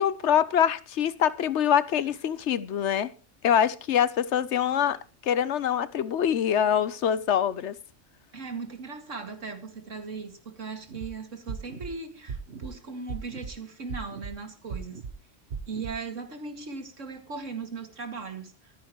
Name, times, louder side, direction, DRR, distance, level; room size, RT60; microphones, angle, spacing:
voice 1, 0.0-3.1 3.4-5.0 5.2-7.7, left 9 dB, 70° left, 1.1 m, -24 dB
voice 2, 8.3-15.0 15.7-18.7, right 4 dB, 85° right, 2.4 m, -38 dB
sound 1, 10.9-11.1 11.5-11.9 12.3-12.7 13.1-13.5 13.9-14.3 14.7-15.1 15.5-15.9, right 5 dB, 60° right, 1.3 m, -37 dB
24.0 x 9.7 x 3.0 m
omnidirectional pair, 1.3 m